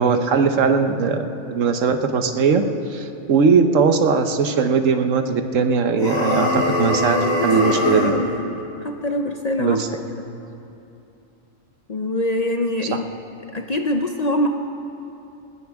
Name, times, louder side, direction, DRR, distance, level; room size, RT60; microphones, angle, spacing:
voice 1, 0.0-2.6 2.9-7.2 7.4-8.1 9.6-9.9, right 5 dB, 75° right, 7 dB, 1.2 m, -19 dB
sound 1, 5.9-8.2, left 1 dB, 85° left, 3.3 m, -21 dB
voice 2, 7.2-8.5 8.8-9.8 11.9-13.1 13.5-14.5, left 1 dB, 40° left, 4 dB, 0.6 m, -24 dB
19.5 x 19.0 x 3.5 m, 2.8 s
omnidirectional pair, 1.3 m